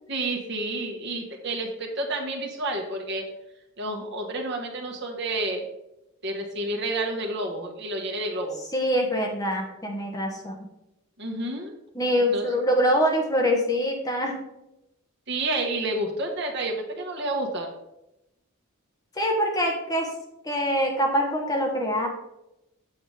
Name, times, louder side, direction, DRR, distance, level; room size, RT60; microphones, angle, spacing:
voice 1, 0.1-3.3 3.8-5.7 6.2-8.6 11.2-11.7 12.3-12.5 15.3-17.7, right 2 dB, 55° right, 1 dB, 1.5 m, -30 dB
voice 2, 8.7-10.7 11.9-14.3 19.2-20.1 20.4-22.1, equal, 15° left, 1 dB, 1.1 m, -24 dB
8.0 x 7.9 x 3.4 m, 0.88 s
head